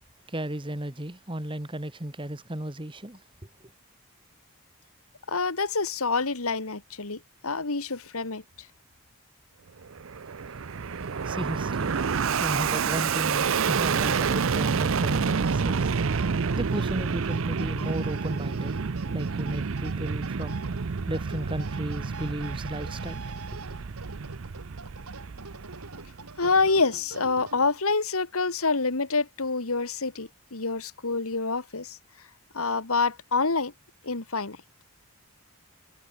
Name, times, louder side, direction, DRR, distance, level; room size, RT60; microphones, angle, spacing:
voice 1, 0.3-3.2 11.2-11.9 12.4-15.9 16.5-20.8 21.1-23.3, right 1 dB, 20° right, 1.5 m, -34 dB
voice 2, 5.3-8.7 26.4-32.0 32.5-33.7 34.0-34.6, left 4 dB, 75° left, 1.9 m, -27 dB
Fixed-wing aircraft airplane, 9.8-26.4, right 5 dB, 60° right, 0.6 m, -29 dB
sound 1, 13.9-28.0, right 3 dB, 90° right, 3.7 m, -45 dB
head